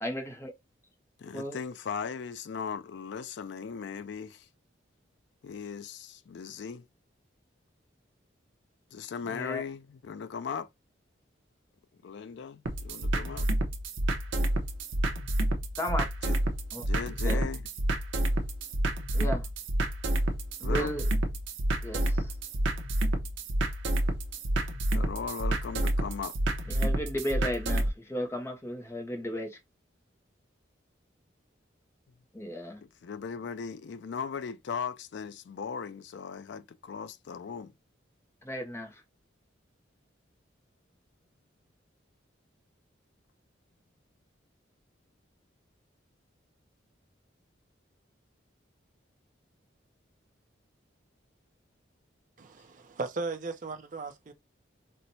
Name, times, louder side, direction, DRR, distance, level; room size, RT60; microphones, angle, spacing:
voice 1, 0.0-0.5 1.3-1.6 9.3-9.6 15.8-16.1 16.7-16.8 17.2-17.4 19.1-19.5 20.6-21.1 21.8-22.3 26.7-29.6 32.3-32.8 38.4-39.0, equal, 15° left, 0.5 m, -34 dB
voice 2, 1.2-4.5 5.4-6.9 8.9-10.7 12.0-13.5 16.2-16.4 16.8-17.6 20.6-20.9 24.9-26.4 32.8-37.7, left 6 dB, 65° left, 0.3 m, -38 dB
sound 1, 12.7-27.9, right 1 dB, 80° right, 0.7 m, -29 dB
voice 3, 52.4-54.3, right 3 dB, 40° right, 0.4 m, -36 dB
4.3 x 2.1 x 2.6 m
head